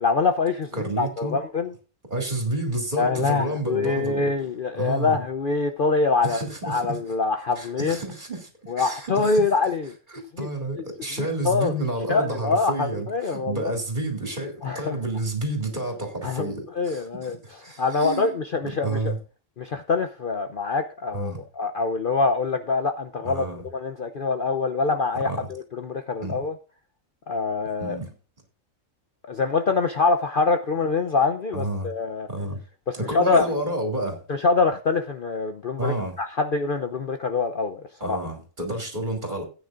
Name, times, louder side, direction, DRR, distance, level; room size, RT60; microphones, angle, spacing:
voice 1, 0.0-0.7 1.0-1.7 3.0-8.0 8.7-9.9 10.4-10.5 11.4-11.7 12.1-13.7 14.6-15.0 16.2-16.5 16.8-17.4 17.8-19.1 19.6-23.5 23.7-26.5 27.3-28.0 29.3-32.3 32.9-33.5 34.3-38.2, left 4 dB, 50° left, 0.8 m, -24 dB
voice 2, 0.7-1.4 2.1-4.3 4.8-5.2 6.2-7.0 7.6-9.4 10.4-18.3 18.6-19.2 21.1-21.4 23.2-23.7 25.1-25.4 26.2-26.4 27.8-28.1 31.5-31.9 32.3-32.6 32.9-34.2 35.8-36.2 38.0-39.5, right 1 dB, 35° right, 3.4 m, -30 dB
17.0 x 9.3 x 2.5 m
omnidirectional pair, 1.4 m